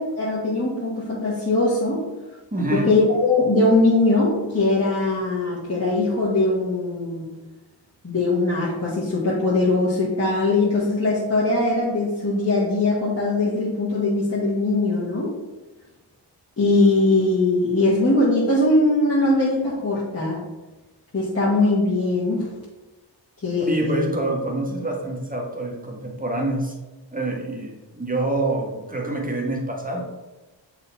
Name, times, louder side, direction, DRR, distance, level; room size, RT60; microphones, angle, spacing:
voice 1, 0.0-2.0 2.7-7.3 8.0-15.3 16.6-20.4 21.1-22.5 23.4-24.1, left 2 dB, 30° left, -7 dB, 1.9 m, -21 dB
voice 2, 2.5-2.9 23.6-26.8 27.1-30.0, right 2 dB, 20° right, 0 dB, 1.7 m, -26 dB
6.7 x 4.4 x 4.2 m, 1.1 s
cardioid pair, 50°, 45 cm